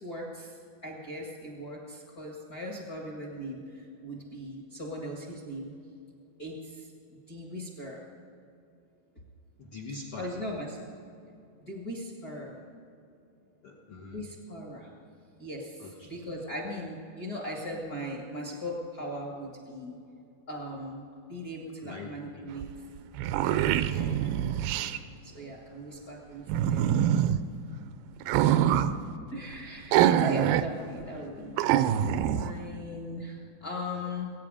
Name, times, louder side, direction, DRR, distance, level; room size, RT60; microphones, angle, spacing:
voice 1, 0.0-5.7 6.4-8.0 10.1-10.8 11.6-12.5 14.1-14.9 15.4-20.0 20.5-21.0 21.3-22.7 23.4-24.9 25.2-26.4 26.7-27.1 29.3-34.3, left 1 dB, 40° left, -2 dB, 1.3 m, -39 dB
voice 2, 9.6-10.3 13.6-14.2 15.8-16.1 21.8-22.5 23.8-24.1, left 3 dB, 75° left, -2 dB, 1.2 m, -43 dB
sound 1, 22.6-22.7 23.0-25.0 26.5-27.4 28.2-28.9 29.9-30.7 31.0-31.1 31.6-32.5, right 11 dB, 80° right, 2.2 m, -24 dB
22.0 x 9.3 x 4.9 m, 2.6 s
omnidirectional pair, 4.4 m